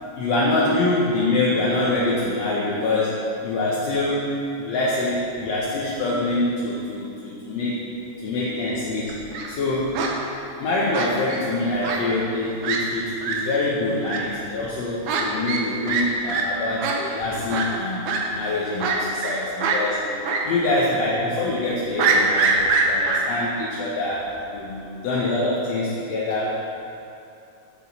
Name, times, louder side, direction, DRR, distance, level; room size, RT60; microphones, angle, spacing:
voice 1, 0.2-7.9 8.2-9.9 10.6-18.1 18.3-26.6, left 2 dB, 70° left, -5 dB, 2.0 m, -25 dB
Fowl, 9.1-9.5 9.9-10.1 10.9-11.4 11.8-12.0 12.3-12.4 12.6-12.8 13.2-13.3 14.1-14.2 15.1-15.2 15.5-15.6 15.9-16.0 16.3-16.4 16.8-16.9 17.5-17.7 18.1-18.2 18.8-19.3 19.6-19.8 20.3-20.4 20.7-20.8 22.0-23.2, right 5 dB, 85° right, 2.4 m, -23 dB
10.0 x 8.0 x 4.1 m, 2.7 s
omnidirectional pair, 3.4 m